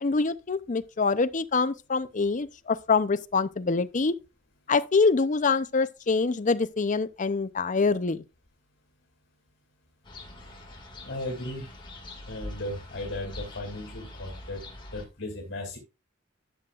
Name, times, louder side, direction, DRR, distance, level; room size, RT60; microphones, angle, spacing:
voice 1, 0.0-4.1 4.7-8.2, left 4 dB, 40° left, 0.6 m, -25 dB
sound 1, 10.0-15.1, left 1 dB, 25° left, 2.1 m, -43 dB
voice 2, 11.0-11.7 12.3-14.6 14.9-15.8, left 1 dB, 65° left, 2.7 m, -36 dB
12.0 x 7.8 x 2.4 m
head